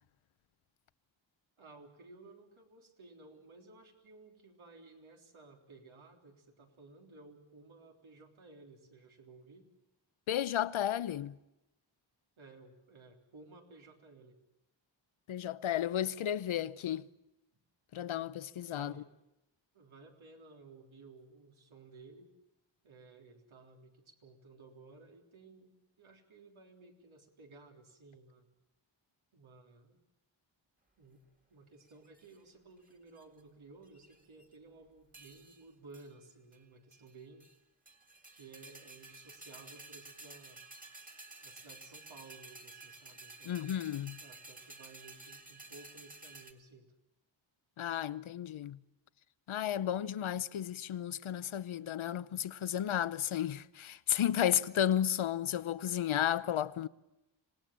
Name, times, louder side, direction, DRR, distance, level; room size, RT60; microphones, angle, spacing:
voice 1, 1.6-9.7 12.4-14.4 18.7-19.1 19.7-22.3 22.8-25.7 26.0-28.5 29.3-30.0 31.0-31.2 31.5-37.5 38.3-40.6 41.4-43.7 44.2-46.9, right 3 dB, 85° right, 3.6 m, -56 dB
voice 2, 10.3-11.4 15.3-17.1 17.9-18.9 43.4-44.2 47.8-48.8 49.5-56.9, left 10 dB, 85° left, 0.8 m, -33 dB
sound 1, 31.9-32.4 32.9-33.4 33.9-34.5 35.1-35.6 35.9-36.1 36.5-36.6 36.9-37.6 37.9-46.5, right 2 dB, 15° right, 1.9 m, -53 dB
26.5 x 18.5 x 7.5 m
wide cardioid pair, 140°, 47 cm